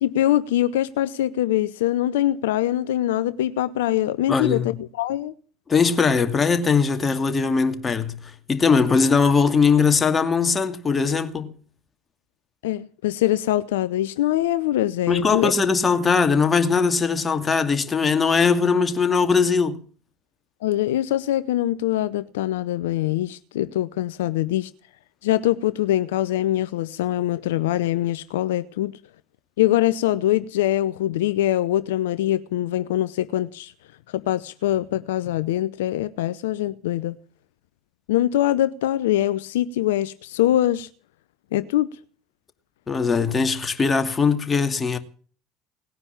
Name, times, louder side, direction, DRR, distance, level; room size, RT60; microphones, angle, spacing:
voice 1, 0.0-5.3 12.6-15.5 20.6-24.7 25.2-28.9 29.6-33.7 34.1-37.2 38.1-40.9 41.5-41.9, left 13 dB, 80° left, 0.7 m, -23 dB
voice 2, 4.3-4.7 5.7-11.5 15.1-19.8 42.9-45.0, left 5 dB, 25° left, 2.5 m, -20 dB
19.0 x 9.8 x 7.1 m
hypercardioid pair, 65°, 0 cm